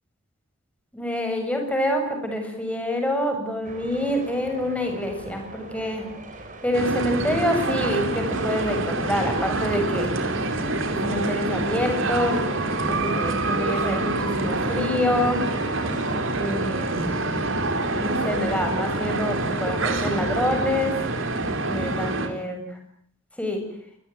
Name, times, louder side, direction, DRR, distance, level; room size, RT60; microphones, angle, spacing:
voice 1, 0.9-6.1 6.6-10.2 10.9-12.4 12.9-15.5 16.4-17.2 18.0-21.0 21.6-22.8 23.4-23.7, left 1 dB, 5° left, 4 dB, 7.4 m, -26 dB
sound 1, 3.6-21.6, right 1 dB, 40° right, 5.5 m, -41 dB
sound 2, 6.7-22.3, right 2 dB, 65° right, 4.6 m, -26 dB
27.5 x 22.0 x 9.3 m, 0.66 s
head